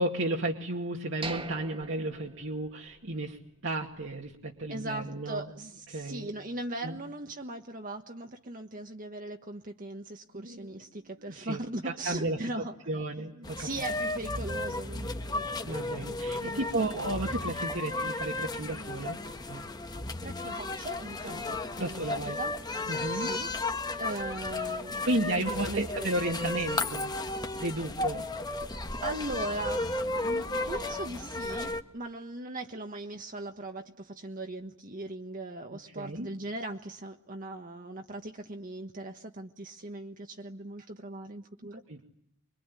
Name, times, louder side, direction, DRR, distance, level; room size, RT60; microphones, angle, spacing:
voice 1, 0.0-5.5 5.9-6.3 6.8-7.0 10.3-10.8 11.2-12.4 12.9-13.7 15.6-19.2 19.5-19.7 21.2-21.4 21.8-22.4 22.9-23.3 25.0-27.1 27.5-28.3 36.0-36.3 41.7-42.0, right 1 dB, 65° right, 0 dB, 2.4 m, -33 dB
sound 1, 1.2-3.2 3.5-3.6 4.1-4.3, right 3 dB, 25° right, 1.7 m, -42 dB
voice 2, 4.7-12.7 13.6-15.3 16.4-16.9 20.2-22.5 23.1-23.5 24.0-25.0 25.7-26.1 29.0-42.0, right 2 dB, 45° right, 4 dB, 1.4 m, -39 dB
sound 2, 13.4-31.8, left 2 dB, 20° left, 1.4 m, -34 dB
25.5 x 23.5 x 9.9 m, 0.77 s
head